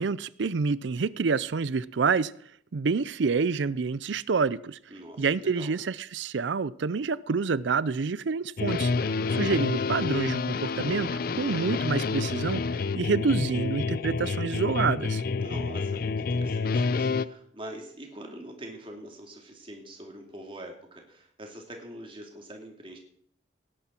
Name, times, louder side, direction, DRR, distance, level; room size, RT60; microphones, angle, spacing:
voice 1, 0.0-2.3 2.7-4.8 5.2-12.6 13.0-15.2, right 5 dB, 75° right, 0.5 m, -28 dB
voice 2, 4.9-5.7 15.4-23.0, right 1 dB, 30° right, 2.5 m, -44 dB
sound 1, 8.6-17.2, left 4 dB, 50° left, 0.4 m, -28 dB
18.0 x 10.0 x 4.4 m
head